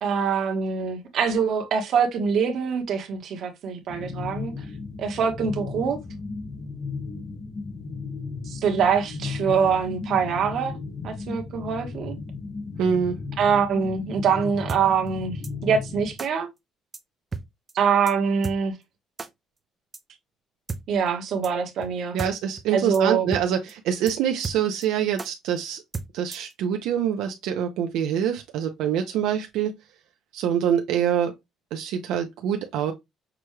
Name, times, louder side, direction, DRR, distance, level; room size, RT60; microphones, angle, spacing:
voice 1, 0.0-4.5 5.0-6.0 8.5-10.8 11.0-12.2 13.4-16.5 17.7-18.7 20.9-22.2 22.7-23.3, right 6 dB, 55° right, 1.1 m, -24 dB
sound 1, 3.9-16.2, left 4 dB, 25° left, 0.5 m, -35 dB
voice 2, 12.8-13.2 22.1-25.8 26.1-29.7 30.3-31.3 31.7-32.9, right 8 dB, 85° right, 0.6 m, -25 dB
sound 2, 14.7-14.8 15.4-15.5 16.2-16.3 16.9-17.0 17.3-17.4 17.7-17.8 18.1-18.2 18.4-18.6 19.2-19.3 19.9-20.0 20.7-20.8 21.4-21.5 21.8-21.9 22.2-22.3 22.6-22.7 22.9-23.0 23.3-23.4 23.7-23.8 24.1-24.2 24.4-24.9 25.2-25.3 25.9-26.5, right 4 dB, 20° right, 0.4 m, -33 dB
6.0 x 2.3 x 3.0 m
cardioid pair, 155°, 0 cm